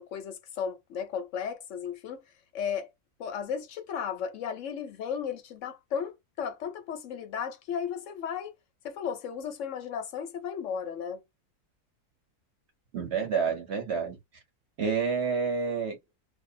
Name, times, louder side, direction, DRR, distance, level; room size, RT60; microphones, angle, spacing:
voice 1, 0.0-2.2 2.5-2.9 3.2-8.6 8.8-11.2, left 7 dB, 70° left, 0.8 m, -35 dB
voice 2, 12.9-14.2 14.8-16.0, right 5 dB, 50° right, 1.0 m, -29 dB
2.6 x 2.1 x 2.5 m
omnidirectional pair, 1.7 m